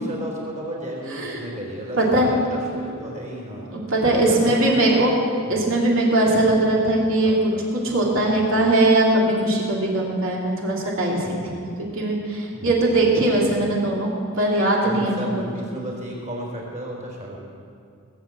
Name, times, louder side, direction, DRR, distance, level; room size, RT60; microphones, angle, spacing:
voice 1, 0.0-3.7 4.2-5.0 5.5-5.6 7.2-7.6 8.2-8.7 12.5-13.0 14.8-17.4, right 1 dB, 35° right, -2 dB, 4.0 m, -33 dB
voice 2, 1.1-1.5 2.0-2.3 3.7-5.1 5.5-7.4 7.7-11.6 11.9-15.3, right 1 dB, 60° right, -3 dB, 3.0 m, -20 dB
19.0 x 8.4 x 7.5 m, 2.4 s
head